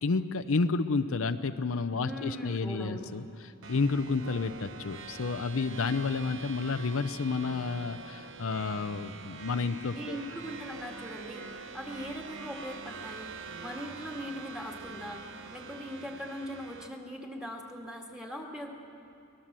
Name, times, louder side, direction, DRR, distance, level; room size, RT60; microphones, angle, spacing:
voice 1, 0.0-10.2, left 4 dB, 70° left, 10 dB, 0.6 m, -30 dB
voice 2, 2.0-3.1 9.9-13.3 13.6-15.2 15.5-18.8, equal, 5° right, 0 dB, 2.2 m, -40 dB
sound 1, 3.6-16.9, right 4 dB, 65° right, 1.1 m, -45 dB
24.0 x 19.0 x 7.5 m, 2.6 s
head